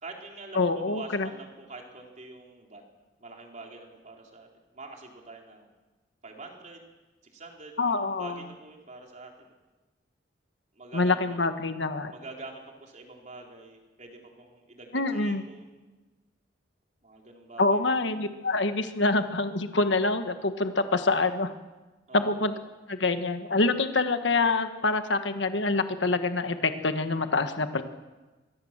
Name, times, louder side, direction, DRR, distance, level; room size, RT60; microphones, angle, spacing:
voice 1, 0.0-2.8 3.2-4.5 4.7-5.7 6.2-6.9 7.3-9.5 10.8-11.4 12.1-15.9 17.0-17.8 22.1-22.3, right 3 dB, 40° right, 1 dB, 3.8 m, -45 dB
voice 2, 0.5-1.3 7.8-8.4 10.9-12.1 14.9-15.5 17.6-21.5 22.1-22.5 22.9-27.8, left 3 dB, 75° left, 8 dB, 1.5 m, -26 dB
23.5 x 17.5 x 7.5 m, 1.2 s
head